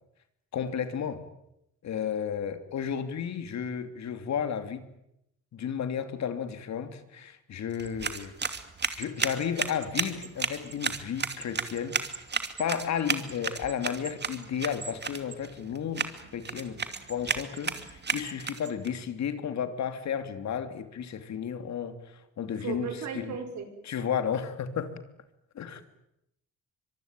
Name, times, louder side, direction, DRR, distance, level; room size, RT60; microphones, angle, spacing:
voice 1, 0.5-1.2 1.8-4.9 5.5-8.3 8.9-12.0 12.6-16.8 17.1-22.9 23.1-23.3 23.9-24.9 25.5-25.8, left 8 dB, 65° left, 9 dB, 3.0 m, -33 dB
sound 1, 7.7-18.9, right 5 dB, 35° right, 2.6 m, -34 dB
voice 2, 22.5-23.7, right 6 dB, 70° right, 6 dB, 5.8 m, -36 dB
24.5 x 23.0 x 9.1 m, 0.81 s
cardioid pair, 90°, 30 cm